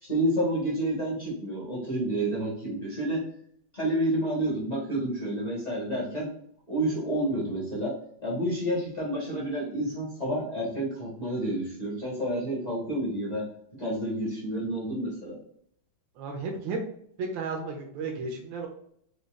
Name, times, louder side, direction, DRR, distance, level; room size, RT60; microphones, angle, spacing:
voice 1, 0.0-3.2 3.7-6.3 6.7-7.9 8.2-13.5 13.8-15.4, right 1 dB, 30° left, -5 dB, 0.8 m, -29 dB
voice 2, 16.2-16.8 17.2-18.7, right 4 dB, 75° right, 2 dB, 1.3 m, -33 dB
5.1 x 2.3 x 2.3 m, 0.65 s
omnidirectional pair, 2.2 m